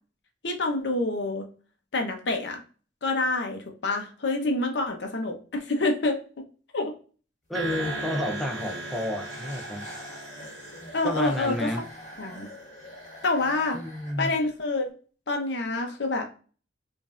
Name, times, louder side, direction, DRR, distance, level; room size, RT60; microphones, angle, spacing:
voice 1, 0.4-1.5 1.9-2.6 3.0-6.5 6.7-6.9 10.9-11.7 12.2-12.5 13.2-13.8 14.2-14.9 15.3-16.3, left 2 dB, 65° left, 3 dB, 0.8 m, -27 dB
voice 2, 7.5-9.8 11.0-11.8 13.7-14.3, left 1 dB, ahead, 2 dB, 0.4 m, -31 dB
sound 1, 7.5-12.0, right 2 dB, 80° right, 0.7 m, -38 dB
sound 2, 7.6-14.8, equal, 40° left, 1.3 m, -43 dB
5.2 x 2.6 x 2.5 m, 0.39 s
head